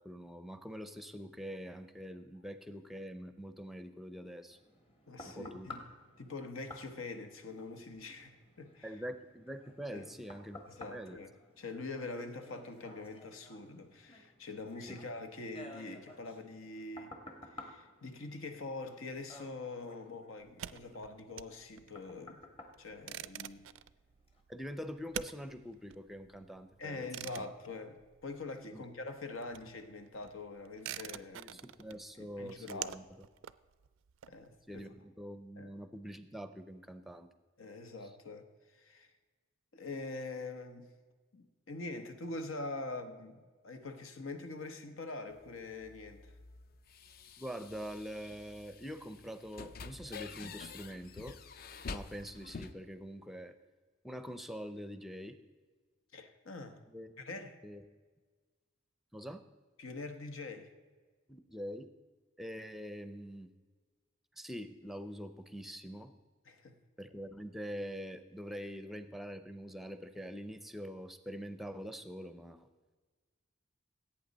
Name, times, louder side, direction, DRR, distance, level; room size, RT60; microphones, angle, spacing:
voice 1, 0.0-4.6 5.2-5.7 8.8-10.6 10.9-11.2 14.9-15.0 24.5-27.1 27.4-27.5 28.7-28.8 31.3-33.0 34.7-37.3 47.4-51.4 51.9-53.6 54.0-55.4 56.9-57.1 57.6-57.8 59.1-59.4 61.3-61.9 62.4-63.5 64.4-66.1 67.0-72.7, equal, ahead, 11 dB, 0.5 m, -44 dB
sound 1, 4.5-23.8 24.3-24.4, left 2 dB, 30° left, 1.4 m, -54 dB
voice 2, 5.1-5.8 6.2-8.9 9.9-10.0 10.7-17.2 17.5-22.4 22.8-23.7 26.8-31.6 31.9-33.0 34.3-34.9 35.6-35.7 37.6-38.5 38.7-39.1 39.7-40.9 41.3-46.3 56.1-56.8 57.2-57.6 59.8-60.7 66.5-66.8, left 3 dB, 85° left, 8 dB, 1.1 m, -44 dB
sound 2, 20.4-28.8 29.0-34.8, right 11 dB, 75° right, 0.4 m, -47 dB
sound 3, 45.3-52.7, left 4 dB, 45° left, 0.5 m, -48 dB
17.0 x 8.5 x 4.1 m, 1.4 s
head